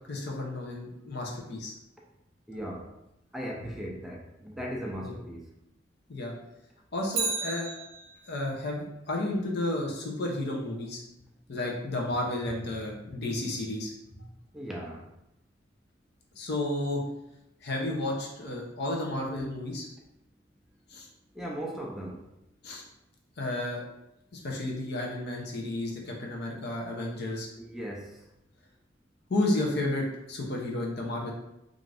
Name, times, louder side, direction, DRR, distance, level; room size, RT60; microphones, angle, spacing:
voice 1, 0.1-1.7 5.0-5.1 6.1-6.3 6.9-7.7 8.3-11.0 11.5-13.9 14.2-14.3 16.4-17.0 17.6-19.9 20.9-21.1 22.6-22.8 23.4-24.0 24.3-27.5 29.3-31.3, left 1 dB, 60° left, -1 dB, 0.6 m, -32 dB
voice 2, 2.5-2.9 3.3-5.5 14.5-15.1 21.3-22.3 27.5-28.2, equal, ahead, -2 dB, 0.3 m, -38 dB
Bicycle, 7.1-8.5 16.8-16.9, right 4 dB, 80° right, 0.7 m, -33 dB
2.5 x 2.5 x 3.2 m, 0.88 s
head